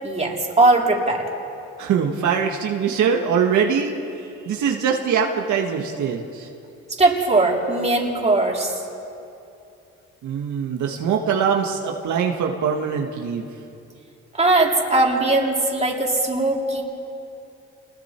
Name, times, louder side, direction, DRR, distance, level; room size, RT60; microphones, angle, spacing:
voice 1, 0.0-1.2 7.0-8.8 14.4-16.8, right 2 dB, 20° right, -1 dB, 3.7 m, -19 dB
voice 2, 1.8-4.0 4.4-6.5 10.2-13.5, right 7 dB, 75° right, 1 dB, 1.7 m, -22 dB
29.5 x 20.5 x 4.5 m, 2.7 s
cardioid pair, 90°, 30 cm